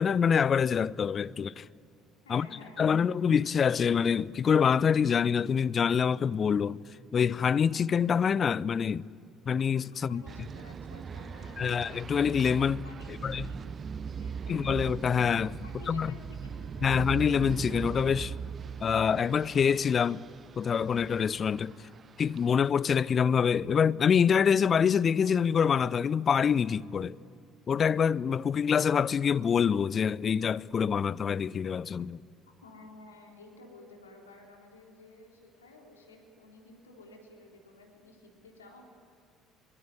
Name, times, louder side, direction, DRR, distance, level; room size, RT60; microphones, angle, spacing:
voice 1, 0.0-1.5 2.3-2.5 2.8-6.8 7.1-9.0 9.5-10.2 11.6-12.8 13.2-13.5 14.5-15.6 15.9-16.1 16.8-18.3 18.8-20.2 20.6-21.7 22.2-27.1 27.7-32.2, left 7 dB, 35° left, 0.6 m, -26 dB
voice 2, 2.2-3.2 10.1-11.9 12.8-14.7 15.6-17.0 32.6-38.8, left 2 dB, 80° left, 3.9 m, -53 dB
sound 1, 10.3-22.5, right 6 dB, 35° right, 0.7 m, -40 dB
25.5 x 23.0 x 9.5 m
figure-of-eight pair, 55°, 0 cm